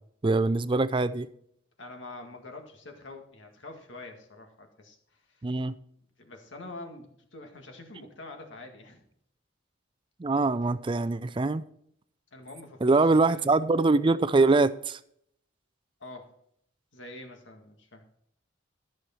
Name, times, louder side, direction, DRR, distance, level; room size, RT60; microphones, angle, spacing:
voice 1, 0.2-1.3 5.4-5.7 10.2-11.6 12.8-15.0, right 3 dB, 25° right, 0.4 m, -23 dB
voice 2, 1.8-5.5 6.2-9.0 12.3-13.6 16.0-16.3 16.9-18.0, left 2 dB, 70° left, 1.9 m, -45 dB
13.5 x 6.4 x 4.4 m
head